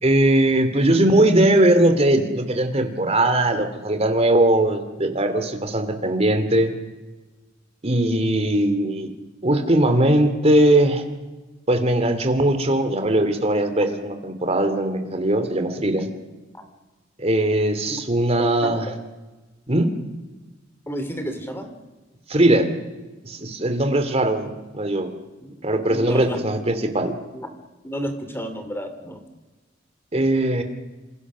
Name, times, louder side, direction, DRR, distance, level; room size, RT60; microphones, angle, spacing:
voice 1, 0.0-6.7 7.8-9.1 9.4-11.0 11.7-16.1 17.2-18.8 19.7-19.9 22.3-22.7 23.2-25.1 25.6-27.1 30.1-30.6, right 1 dB, 35° right, 7 dB, 2.9 m, -20 dB
voice 2, 18.6-19.0 20.9-21.7 25.4-25.6 25.9-26.5 27.3-27.5 27.8-29.2, equal, 10° left, 7 dB, 2.9 m, -31 dB
28.0 x 26.5 x 6.3 m, 1.2 s
head